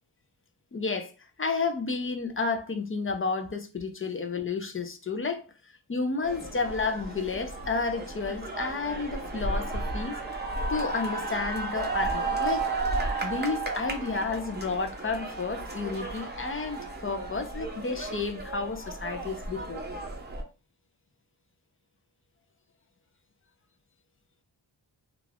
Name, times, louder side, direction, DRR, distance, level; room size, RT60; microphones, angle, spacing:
voice 1, 0.7-1.1 1.4-5.5 5.9-10.2 10.7-12.7 13.2-19.8, left 4 dB, 30° left, 0.5 m, -31 dB
sound 1, 6.2-20.4, right 3 dB, 25° right, 0.6 m, -33 dB
2.4 x 2.4 x 3.3 m
wide cardioid pair, 85°, 43 cm